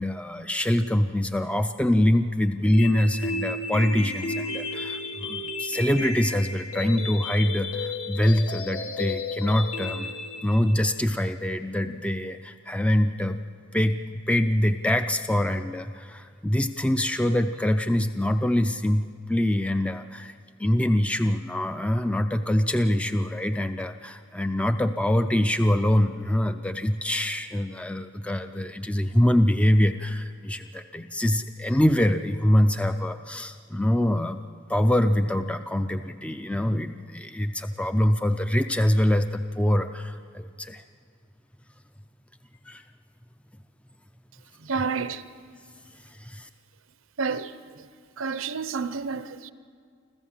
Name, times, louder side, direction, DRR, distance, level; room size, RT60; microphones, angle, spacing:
voice 1, 0.0-10.1 10.4-13.4 13.7-20.3 20.6-34.4 34.7-40.8 42.7-42.8 44.8-44.9 46.0-46.5, left 1 dB, 5° left, 0.4 m, -24 dB
sound 1, 2.7-10.7, left 3 dB, 80° left, 1.7 m, -33 dB
voice 2, 44.7-45.2 47.2-47.5 48.2-49.5, right 5 dB, 75° right, 0.8 m, -29 dB
26.0 x 15.0 x 7.3 m
head